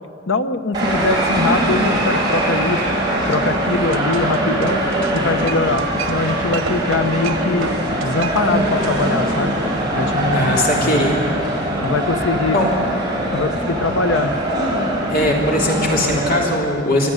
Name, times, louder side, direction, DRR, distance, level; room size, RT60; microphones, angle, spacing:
voice 1, 0.3-2.8 3.3-4.8 5.1-7.7 8.0-9.6 10.0-10.5 11.8-12.6 13.3-14.3, left 3 dB, 75° left, 9 dB, 1.1 m, -22 dB
sound 1, 0.7-16.4, right 1 dB, 20° right, 6.1 m, -21 dB
sound 2, 3.2-9.1, right 4 dB, 90° right, 1.2 m, -31 dB
voice 2, 10.3-11.1 12.5-12.7 15.1-17.1, left 1 dB, 45° left, -1 dB, 3.3 m, -19 dB
23.5 x 13.5 x 9.7 m, 2.6 s
head